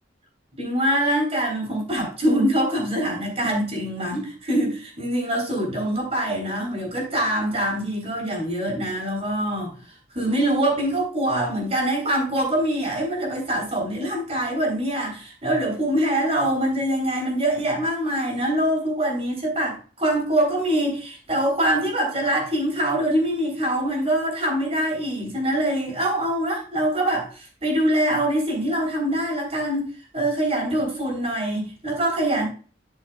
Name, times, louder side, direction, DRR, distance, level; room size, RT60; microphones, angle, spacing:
voice 1, 0.6-9.7 10.1-32.5, right 1 dB, 35° right, 0 dB, 3.6 m, -24 dB
12.5 x 6.1 x 2.3 m, 0.38 s
head